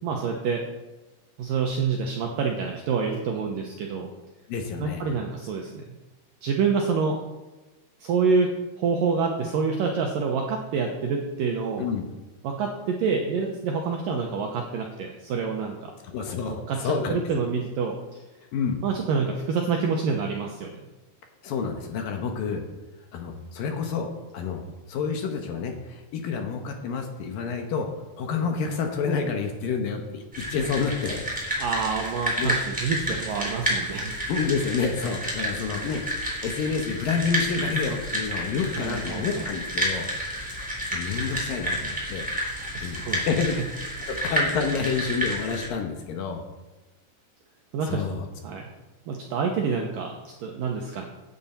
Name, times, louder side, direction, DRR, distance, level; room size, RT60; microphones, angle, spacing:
voice 1, 0.0-0.6 1.4-4.1 4.8-5.8 6.4-7.2 8.0-11.8 12.4-15.9 16.7-18.0 18.8-20.8 31.6-34.1 38.8-39.2 42.7-43.2 44.0-44.1 47.7-48.0 48.4-48.6 49.1-50.1 50.4-51.1, right 5 dB, 70° right, 1 dB, 2.2 m, -27 dB
voice 2, 4.5-5.0 11.8-12.0 16.0-17.2 18.5-18.8 21.4-22.6 23.1-24.6 24.9-27.9 28.2-31.6 32.4-32.6 34.3-36.0 36.4-40.1 40.5-42.3 42.8-43.5 44.1-46.4 47.9-48.2, left 5 dB, 65° left, 4 dB, 2.4 m, -29 dB
sound 1, 30.3-45.7, equal, ahead, 3.2 m, -30 dB
16.0 x 9.5 x 4.4 m, 1.1 s
omnidirectional pair, 5.0 m